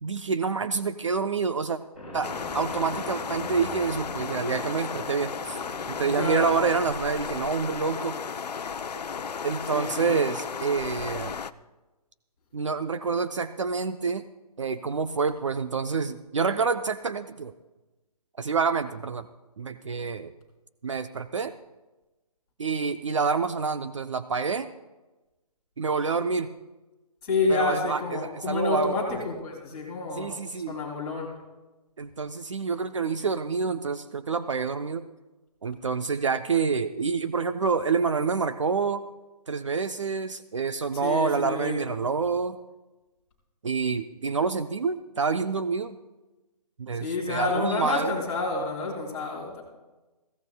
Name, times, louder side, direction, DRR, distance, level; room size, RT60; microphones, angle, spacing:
voice 1, 0.0-1.8 2.1-5.6 5.9-8.2 9.4-11.4 12.5-14.2 14.6-17.5 18.4-19.3 19.6-20.3 20.8-21.5 22.6-24.7 25.8-26.5 27.5-29.2 30.2-30.8 32.0-35.0 35.6-39.0 39.5-42.6 43.6-46.0 46.8-48.1, right 5 dB, 50° right, 10 dB, 0.6 m, -27 dB
sound 1, 2.0-8.0, left 1 dB, 5° right, 3.6 m, -42 dB
sound 2, 2.2-11.5, left 6 dB, 90° left, 0.6 m, -34 dB
voice 2, 6.0-6.6 9.7-10.2 27.2-30.3 30.7-31.3 41.0-41.8 47.0-49.6, left 3 dB, 10° left, -4 dB, 2.6 m, -29 dB
21.5 x 16.0 x 2.3 m, 1.1 s
hypercardioid pair, 175°, 20 cm